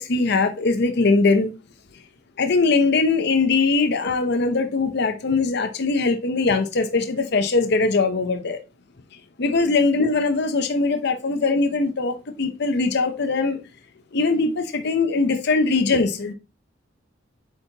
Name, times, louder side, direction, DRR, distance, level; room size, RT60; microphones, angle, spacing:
voice 1, 0.0-1.5 2.4-8.6 9.4-13.6 14.1-16.3, left 3 dB, 60° left, 0.7 m, -21 dB
8.1 x 4.3 x 2.8 m
head